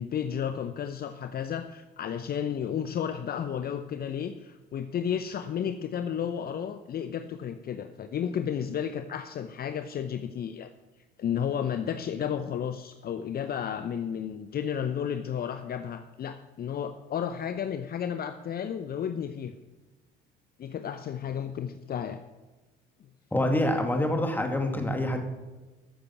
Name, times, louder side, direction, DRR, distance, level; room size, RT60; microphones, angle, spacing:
voice 1, 0.0-10.7 11.2-19.5 20.6-22.2, left 8 dB, 45° left, 9 dB, 0.8 m, -32 dB
voice 2, 23.3-25.2, left 1 dB, 10° left, 3 dB, 2.5 m, -26 dB
14.5 x 6.7 x 5.9 m, 1.2 s
supercardioid pair, 80°, 21 cm